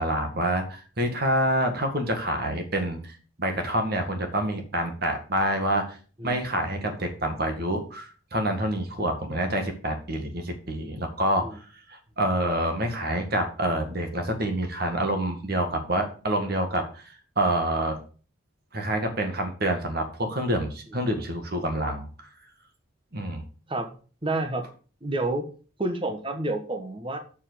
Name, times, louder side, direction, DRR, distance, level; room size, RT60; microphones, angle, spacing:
voice 1, 0.0-6.0 6.2-11.6 11.9-17.0 17.4-18.0 18.7-22.3 23.1-23.4, right 1 dB, 50° right, 5 dB, 2.0 m, -27 dB
voice 2, 24.2-24.7 25.0-25.5 25.8-27.2, right 2 dB, 25° right, 6 dB, 1.2 m, -29 dB
7.3 x 5.5 x 6.9 m, 0.38 s
head